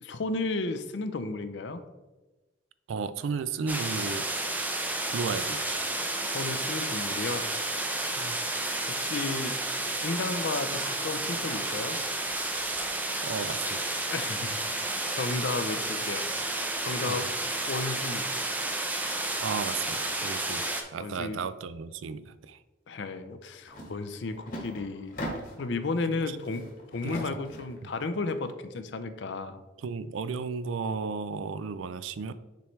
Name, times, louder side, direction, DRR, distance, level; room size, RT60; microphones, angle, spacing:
voice 1, 0.0-1.8 6.2-7.5 8.8-9.6 10.0-12.0 14.1-14.6 15.1-16.3 16.8-17.3 17.7-18.2 21.0-21.4 22.9-25.2 25.6-29.6, left 3 dB, 65° left, 10 dB, 0.5 m, -33 dB
voice 2, 2.9-4.3 5.1-5.8 8.1-8.4 13.2-14.0 17.0-17.3 19.4-22.6 26.1-26.4 27.0-27.2 27.8-27.9 29.8-32.3, right 5 dB, 80° right, 14 dB, 0.4 m, -34 dB
sound 1, 3.7-20.8, right 2 dB, 10° right, 0.5 m, -31 dB
sound 2, 23.7-23.9 24.2-25.7 26.2-27.8, equal, 45° left, 1.3 m, -39 dB
6.9 x 4.6 x 3.2 m, 1.1 s
head